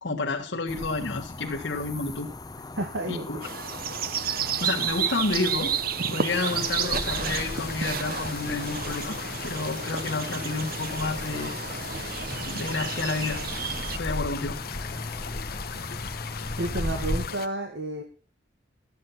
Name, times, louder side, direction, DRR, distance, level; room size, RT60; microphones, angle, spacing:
voice 1, 0.0-2.3 3.1-3.4 4.2-5.7 6.1-11.6 12.0-12.1 12.5-13.4 14.0-14.6, left 3 dB, 70° left, -2 dB, 1.7 m, -30 dB
sound 1, 0.7-17.3, left 2 dB, 20° left, 0.6 m, -37 dB
voice 2, 2.8-3.4 16.6-18.0, right 2 dB, 80° right, 3 dB, 1.9 m, -31 dB
sound 2, 3.4-14.0, right 7 dB, 50° right, 0.7 m, -31 dB
sound 3, 6.3-17.5, left 6 dB, 50° left, 0.9 m, -38 dB
13.5 x 8.7 x 5.8 m, 0.39 s
head